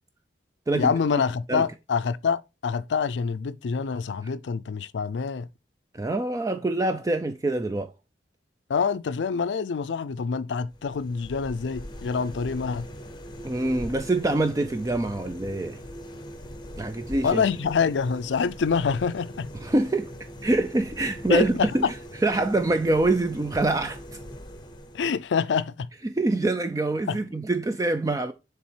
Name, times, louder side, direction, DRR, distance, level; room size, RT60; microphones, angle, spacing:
voice 1, 0.7-5.5 8.7-12.9 17.2-19.5 21.3-21.9 24.9-25.9 27.1-27.2, left 5 dB, 85° left, 0.4 m, -26 dB
voice 2, 5.9-7.9 13.4-15.8 16.8-17.4 19.5-20.1 20.4-22.0 22.2-24.0 26.0-28.3, right 2 dB, 20° right, 0.4 m, -25 dB
sound 1, 10.7-25.3, equal, 25° left, 0.8 m, -42 dB
7.2 x 3.5 x 4.5 m
head